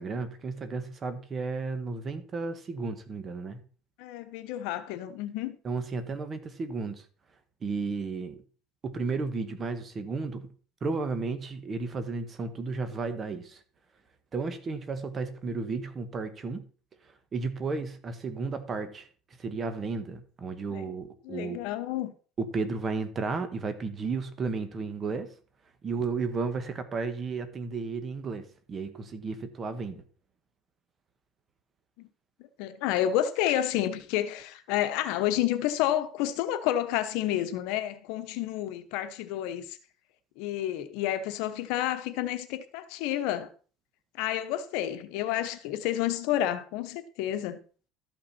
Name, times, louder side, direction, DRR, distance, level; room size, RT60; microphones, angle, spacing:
voice 1, 0.0-3.6 5.6-7.0 7.6-8.4 8.8-10.5 10.8-13.6 14.3-16.6 17.3-19.1 19.4-21.6 22.4-25.3 25.8-30.0, right 4 dB, 30° right, 1.2 m, -33 dB
voice 2, 4.0-5.6 20.7-20.9 21.2-22.1 32.0-32.1 32.6-39.8 40.4-43.5 44.2-47.6, left 12 dB, 75° left, 1.0 m, -30 dB
12.5 x 5.9 x 4.2 m
cardioid pair, 130°, 0 cm